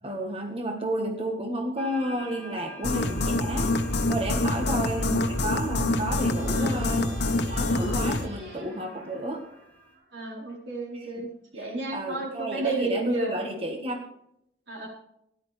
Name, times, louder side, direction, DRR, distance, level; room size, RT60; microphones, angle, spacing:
voice 1, 0.0-3.7 4.1-7.1 7.5-9.4 10.9-11.3 11.5-14.0, right 1 dB, 30° right, 2 dB, 1.4 m, -31 dB
sound 1, 1.8-10.0, equal, 10° left, 3.1 m, -48 dB
sound 2, 2.8-8.3, left 2 dB, 75° left, 1.0 m, -26 dB
sound 3, 6.1-10.5, right 3 dB, 70° right, 2.7 m, -50 dB
voice 2, 6.5-6.9 10.1-13.4 14.7-14.9, right 2 dB, 90° right, -2 dB, 4.1 m, -32 dB
13.5 x 11.0 x 3.3 m, 0.76 s
head